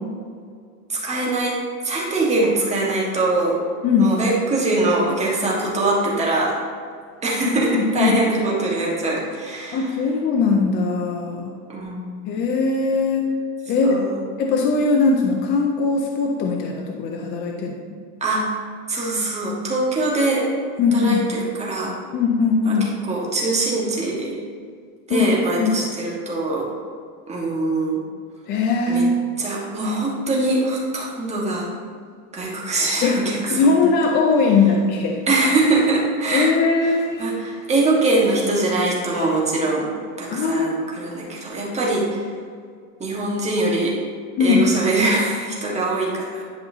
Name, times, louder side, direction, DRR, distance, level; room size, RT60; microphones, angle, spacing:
voice 1, 0.9-1.6 1.8-3.6 4.0-6.5 7.2-9.9 11.7-12.3 13.8-14.2 18.2-18.5 18.9-20.5 20.9-21.9 22.6-24.4 25.1-26.7 27.3-28.0 28.9-29.0 29.4-31.7 32.3-33.8 35.3-36.5 36.8-36.9 37.2-39.9 40.2-42.2 43.0-43.9 44.4-46.4, right 2 dB, 15° right, -4 dB, 1.4 m, -22 dB
voice 2, 7.4-8.2 9.7-11.5 12.3-13.2 13.7-14.0 14.4-17.7 20.8-21.3 22.1-22.9 25.1-25.7 28.5-29.1 33.0-33.2 33.5-35.2 36.3-37.4 40.3-40.7 44.4-44.7, left 4 dB, 25° left, 2 dB, 0.4 m, -20 dB
10.5 x 5.5 x 2.7 m, 2.1 s
cardioid pair, 160°, 45 cm